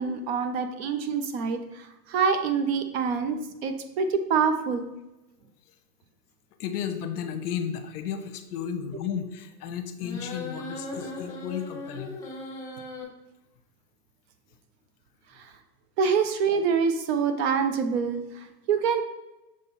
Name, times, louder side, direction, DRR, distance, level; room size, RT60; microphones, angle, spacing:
voice 1, 0.0-4.9 15.4-15.5 16.0-19.0, right 6 dB, 40° right, 8 dB, 0.7 m, -26 dB
voice 2, 6.6-12.2, left 8 dB, 65° left, 8 dB, 0.9 m, -33 dB
sound 1, 10.0-13.0, left 2 dB, 5° left, 1.3 m, -38 dB
6.4 x 3.7 x 4.1 m, 0.98 s
hypercardioid pair, 130°, 48 cm